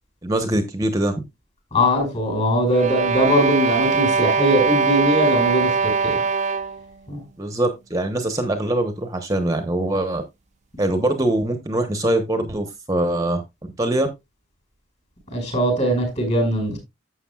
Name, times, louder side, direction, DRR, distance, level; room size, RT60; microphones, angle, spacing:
voice 1, 0.2-1.1 7.4-10.2 10.8-13.4 13.8-14.1, right 1 dB, 20° right, 1.0 m, -22 dB
voice 2, 1.7-6.1 7.1-7.2 15.3-16.8, equal, 35° left, 5.4 m, -21 dB
sound 1, 2.7-6.9, right 5 dB, 40° right, 0.5 m, -21 dB
12.0 x 7.9 x 2.3 m
head